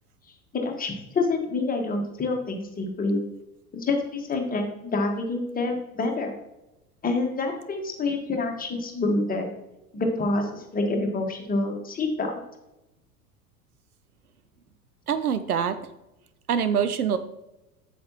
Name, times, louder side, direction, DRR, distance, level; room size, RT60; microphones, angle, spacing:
voice 1, 0.5-3.2 3.7-6.3 7.0-9.5 9.9-12.4, left 3 dB, 20° left, 2 dB, 1.5 m, -27 dB
voice 2, 15.1-15.8 16.5-17.2, right 7 dB, 85° right, 12 dB, 0.6 m, -24 dB
8.3 x 7.3 x 3.0 m, 0.94 s
figure-of-eight pair, 75°, 43 cm